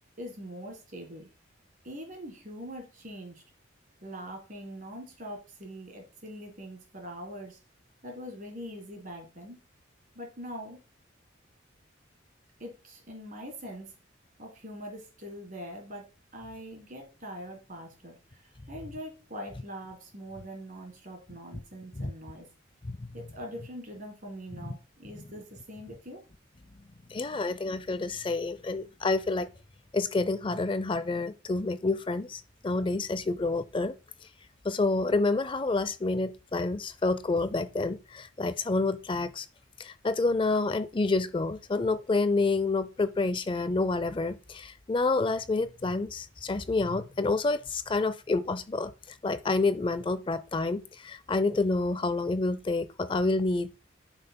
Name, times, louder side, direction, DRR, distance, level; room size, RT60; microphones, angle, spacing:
voice 1, 0.2-1.3 1.8-3.4 4.0-7.6 8.0-9.6 10.1-10.8 12.6-13.9 14.4-16.0 16.3-22.5 23.1-26.2, equal, 40° right, 1.7 m, -43 dB
voice 2, 27.1-29.5 29.9-33.9 34.6-39.5 39.8-48.9 49.2-53.7, left 3 dB, 25° left, 0.4 m, -28 dB
8.9 x 5.6 x 2.2 m
head